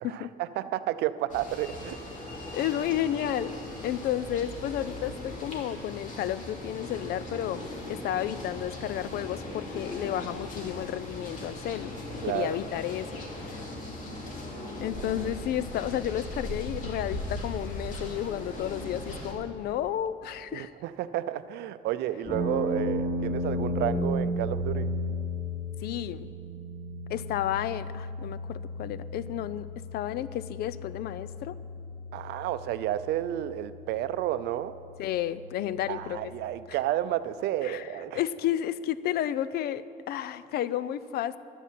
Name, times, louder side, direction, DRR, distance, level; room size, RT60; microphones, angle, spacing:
voice 1, 0.0-2.0 12.2-12.6 20.5-24.9 32.1-34.7 35.9-38.2, right 13 dB, 80° right, 13 dB, 0.5 m, -31 dB
sound 1, 1.3-19.3, left 1 dB, 50° left, 2.6 m, -39 dB
voice 2, 2.5-3.6 3.8-11.9 12.3-13.6 14.8-20.7 25.8-26.3 27.1-31.6 35.0-36.2 37.6-37.9 38.1-41.4, left 11 dB, 70° left, 16 dB, 0.5 m, -32 dB
sound 2, 22.3-36.3, left 1 dB, 20° left, 3.8 m, -35 dB
11.0 x 10.0 x 7.5 m, 2.6 s
cardioid pair, 110°, 17 cm